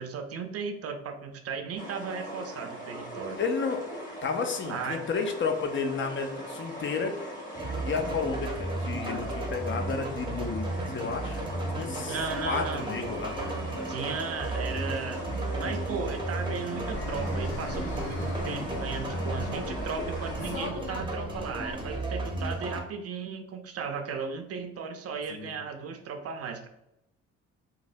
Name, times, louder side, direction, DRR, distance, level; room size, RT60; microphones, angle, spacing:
voice 1, 0.0-3.4 4.7-5.1 12.0-12.9 13.9-15.3 15.5-26.7, right 5 dB, 50° right, 6 dB, 0.5 m, -36 dB
sound 1, 1.8-20.7, right 1 dB, 25° left, 1.2 m, -40 dB
voice 2, 3.4-3.8 4.2-7.1 7.8-11.4 11.7-12.2 12.4-13.4 25.3-25.6, left 5 dB, 40° left, 6 dB, 0.5 m, -32 dB
sound 2, 7.5-22.8, right 2 dB, 15° right, 0.7 m, -34 dB
Fixed-wing aircraft airplane, 16.9-22.0, left 2 dB, 70° left, 0.8 m, -39 dB
3.2 x 2.4 x 2.5 m, 0.84 s
cardioid pair, 90°, 30 cm